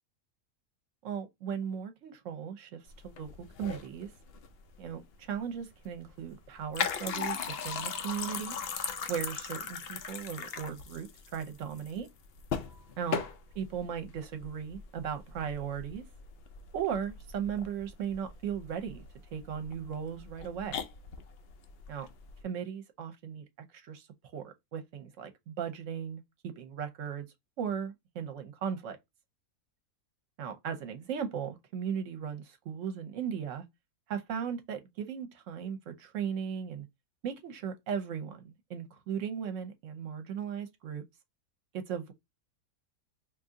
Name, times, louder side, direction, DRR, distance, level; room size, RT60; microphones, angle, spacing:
voice 1, 1.0-3.3 3.6-4.1 4.8-8.6 9.1-12.1 13.0-13.2 13.5-16.0 16.7-19.0 19.3-20.8 21.9-22.1 22.4-23.4 23.7-24.1 24.3-27.3 27.6-29.0 30.4-33.6 34.1-36.9 37.2-41.0 41.7-42.1, right 8 dB, 65° right, 1.0 m, -37 dB
sound 1, 2.9-22.4, left 6 dB, 80° left, 0.5 m, -39 dB
2.6 x 2.6 x 3.6 m
omnidirectional pair, 1.6 m